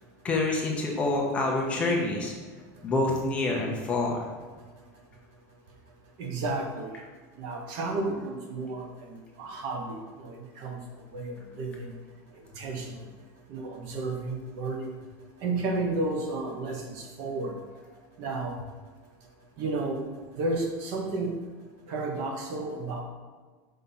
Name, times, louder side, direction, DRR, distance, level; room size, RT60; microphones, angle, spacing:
voice 1, 0.2-2.3 2.8-4.2, left 2 dB, 15° left, -2 dB, 0.8 m, -27 dB
voice 2, 6.2-6.9 7.4-10.8 11.1-12.0 12.4-13.1 13.5-15.0 15.4-17.6 18.2-18.6 19.6-20.0 20.3-21.4 21.9-23.0, right 2 dB, 40° right, 3 dB, 0.9 m, -32 dB
5.6 x 3.6 x 5.5 m, 1.4 s
supercardioid pair, 180°, 9 cm